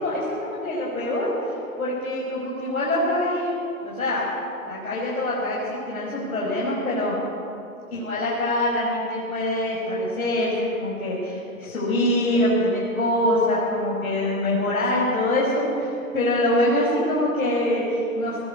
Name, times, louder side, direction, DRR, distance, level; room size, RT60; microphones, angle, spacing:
voice 1, 0.0-3.5 3.8-4.2 4.7-5.6 5.9-7.2 7.9-18.4, left 1 dB, 75° left, -6 dB, 5.8 m, -24 dB
20.5 x 16.5 x 8.1 m, 2.9 s
figure-of-eight pair, 115°, 43 cm